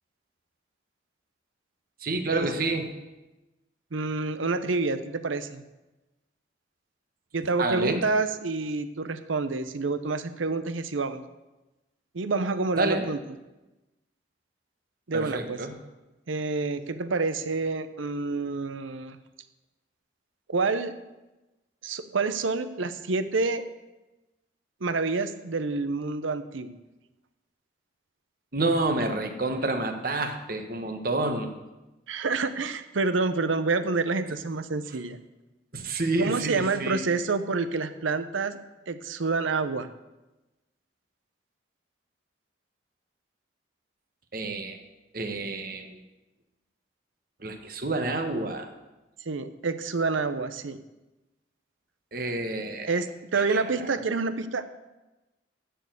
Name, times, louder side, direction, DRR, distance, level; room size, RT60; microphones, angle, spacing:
voice 1, 2.0-2.9 7.6-8.0 12.8-13.1 15.1-15.8 28.5-31.5 35.7-37.0 44.3-44.8 45.1-46.0 47.4-48.7 52.1-52.9 53.3-54.0, right 2 dB, 50° right, 5 dB, 1.2 m, -29 dB
voice 2, 3.9-5.6 7.3-11.2 12.1-13.2 15.1-15.6 16.3-19.2 20.5-20.9 21.8-23.6 24.8-26.7 32.1-35.2 36.2-38.6 38.9-39.9 49.3-50.8 52.9-54.6, right 3 dB, 90° right, 11 dB, 0.7 m, -28 dB
13.5 x 4.6 x 8.2 m, 1.1 s
head